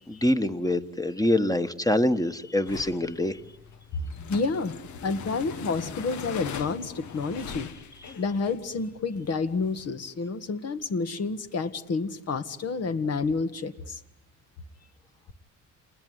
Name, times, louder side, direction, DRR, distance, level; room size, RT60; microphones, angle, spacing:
voice 1, 0.1-3.4, left 1 dB, 10° left, 10 dB, 1.4 m, -25 dB
sound 1, 2.7-9.9, left 7 dB, 75° left, 1.4 m, -41 dB
voice 2, 4.2-4.7 5.0-7.7 8.2-14.0, left 4 dB, 55° left, 10 dB, 1.9 m, -29 dB
29.0 x 20.5 x 9.7 m, 0.85 s
cardioid pair, 90°, 30 cm